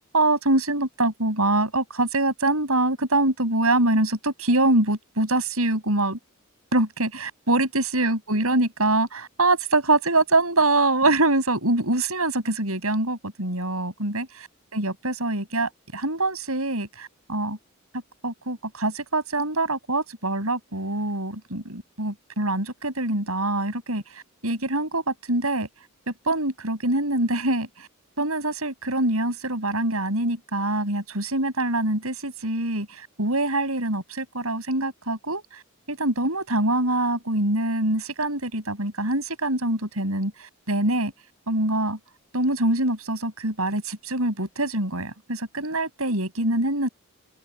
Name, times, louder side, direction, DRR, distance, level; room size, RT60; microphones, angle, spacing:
voice 1, 0.1-6.2 6.7-14.3 14.7-17.6 18.2-24.0 24.4-25.7 26.3-27.7 28.2-35.4 35.9-40.3 40.7-41.1 41.5-42.0 42.3-46.9, right 2 dB, 80° right, 7.3 m, -24 dB
open air
head